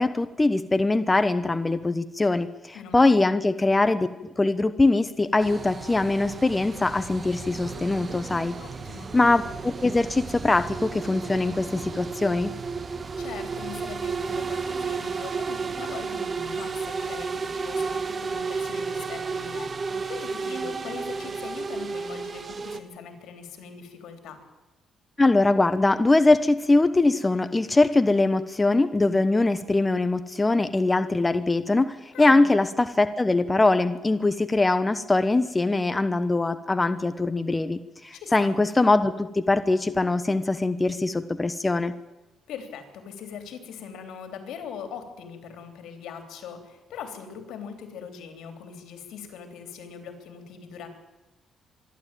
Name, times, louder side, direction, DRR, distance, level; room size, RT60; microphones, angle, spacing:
voice 1, 0.0-4.1 4.4-8.5 9.1-12.5 25.2-41.9, left 2 dB, 20° left, 11 dB, 1.0 m, -22 dB
voice 2, 2.7-3.2 8.6-9.1 13.2-24.4 32.1-32.6 38.1-38.6 42.5-50.9, left 6 dB, 80° left, 7 dB, 3.5 m, -41 dB
sound 1, 5.4-22.8, right 4 dB, 40° right, 1.5 m, -33 dB
25.0 x 12.0 x 9.1 m, 1.1 s
cardioid pair, 90°, 0 cm